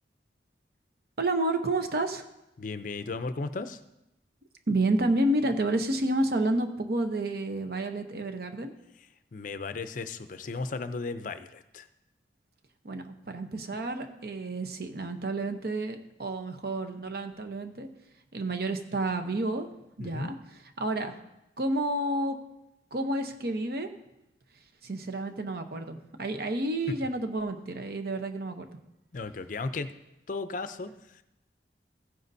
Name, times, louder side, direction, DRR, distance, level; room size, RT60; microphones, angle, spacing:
voice 1, 1.2-2.2 4.7-8.7 12.8-17.9 18.3-19.7 20.0-20.4 20.8-21.2 21.6-22.4 22.9-23.9 24.8-28.7, right 2 dB, 55° right, 7 dB, 0.8 m, -30 dB
voice 2, 2.6-3.8 9.3-11.9 20.0-20.3 26.9-27.0 29.1-29.9 30.3-31.2, left 3 dB, 45° left, 11 dB, 0.5 m, -35 dB
15.5 x 9.4 x 2.7 m, 0.90 s
head